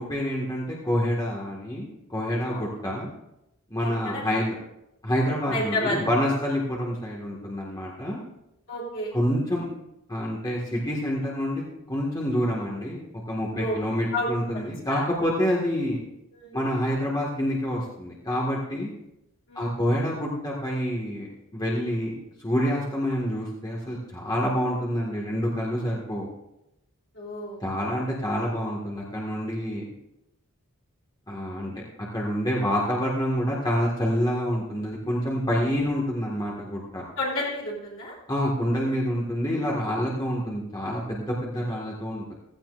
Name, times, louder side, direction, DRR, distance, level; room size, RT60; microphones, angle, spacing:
voice 1, 0.0-3.1 3.7-4.6 5.0-8.2 9.1-9.7 10.1-16.0 16.5-18.9 19.6-21.3 21.5-22.1 22.4-26.3 27.6-29.8 31.3-31.7 32.1-37.0 38.3-42.3, equal, 20° left, -4 dB, 1.8 m, -27 dB
voice 2, 3.8-4.3 5.5-6.0 8.7-9.1 13.5-13.8 14.1-14.3 14.9-15.0 16.3-16.6 19.5-19.8 27.1-27.6 31.5-31.9 37.2-38.1, left 1 dB, 65° left, -5 dB, 3.3 m, -31 dB
16.0 x 14.5 x 2.5 m, 0.88 s
head